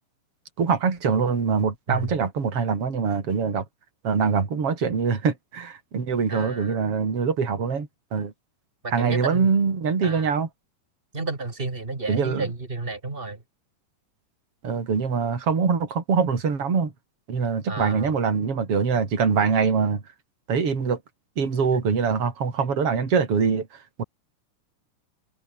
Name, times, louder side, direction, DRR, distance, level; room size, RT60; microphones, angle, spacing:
voice 1, 0.6-3.6 4.0-8.3 8.9-10.5 12.1-12.5 14.6-16.9 17.3-20.0 20.5-21.0 21.4-23.7 24.0-24.1, right 5 dB, 45° right, 4.5 m, -23 dB
voice 2, 6.3-6.8 8.8-9.5 10.0-10.3 11.1-13.4 17.7-18.1, right 3 dB, 20° right, 2.4 m, -31 dB
omnidirectional pair, 3.8 m